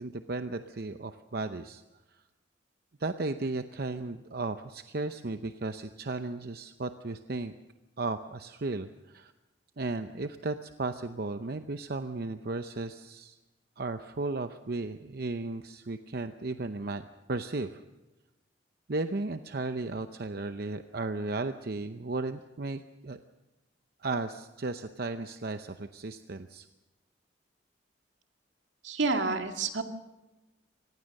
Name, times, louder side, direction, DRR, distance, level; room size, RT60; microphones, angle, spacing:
voice 1, 0.0-1.8 3.0-7.5 8.0-9.3 9.8-13.4 13.8-17.8 18.9-23.2 24.0-26.7, right 3 dB, 55° right, 8 dB, 0.7 m, -35 dB
voice 2, 28.8-29.8, right 3 dB, 80° right, 5 dB, 2.1 m, -29 dB
25.0 x 19.0 x 6.5 m, 1.1 s
head